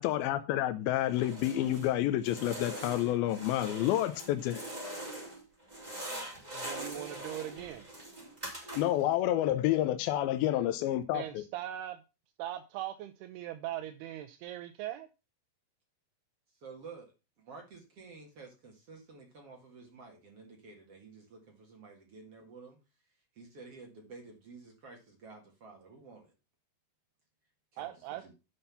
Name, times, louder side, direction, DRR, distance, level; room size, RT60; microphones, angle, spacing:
voice 1, 0.0-4.7 8.8-11.4, left 13 dB, 80° left, 2.2 m, -29 dB
sound 1, 1.1-1.9 2.2-5.4 5.7-9.1, right 1 dB, 10° right, 3.8 m, -42 dB
voice 2, 5.8-7.3 16.6-17.1 17.4-22.8 23.4-26.3 27.7-28.3, right 4 dB, 50° right, 2.0 m, -51 dB
voice 3, 6.5-7.9 11.1-12.0 12.4-15.1 27.8-28.2, right 13 dB, 80° right, 2.5 m, -40 dB
9.9 x 5.6 x 5.6 m
omnidirectional pair, 4.9 m